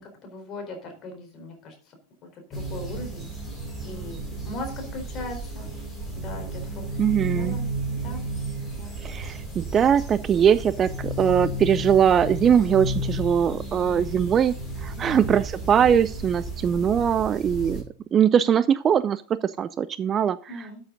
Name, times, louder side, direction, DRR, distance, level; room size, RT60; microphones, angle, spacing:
voice 1, 0.0-2.0 2.3-3.4 3.8-5.7 6.1-7.0 7.4-7.7 7.9-8.2 8.7-8.9 15.0-15.3 16.7-16.9 20.5-20.8, left 2 dB, 30° left, 4 dB, 4.3 m, -39 dB
sound 1, 2.5-17.8, right 1 dB, 10° left, 6.3 m, -33 dB
voice 2, 7.0-7.6 9.0-14.5 14.8-17.8 18.1-20.4, right 8 dB, 25° right, 17 dB, 0.4 m, -21 dB
12.5 x 7.1 x 3.9 m, 0.43 s
figure-of-eight pair, 90°, 0 cm